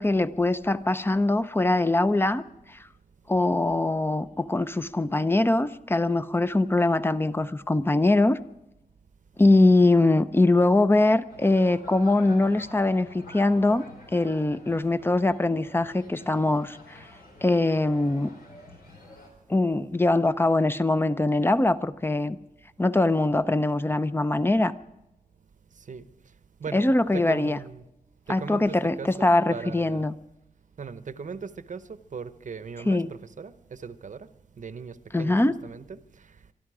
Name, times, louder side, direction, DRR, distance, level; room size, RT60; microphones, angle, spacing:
voice 1, 0.0-2.4 3.3-8.4 9.4-13.8 14.1-17.0 17.4-18.3 19.5-22.4 22.8-24.7 26.7-27.6 28.3-30.1 32.9-33.1 35.1-35.6, left 2 dB, 15° left, 13 dB, 0.6 m, -22 dB
sound 1, 11.3-19.3, left 2 dB, 90° left, 4.2 m, -48 dB
voice 2, 25.7-26.1 26.6-26.9 27.1-27.8 28.3-30.1 30.8-34.3 34.6-35.4 35.6-36.5, right 5 dB, 55° right, 13 dB, 0.8 m, -39 dB
24.0 x 12.5 x 4.9 m, 0.90 s
wide cardioid pair, 95°, 15 cm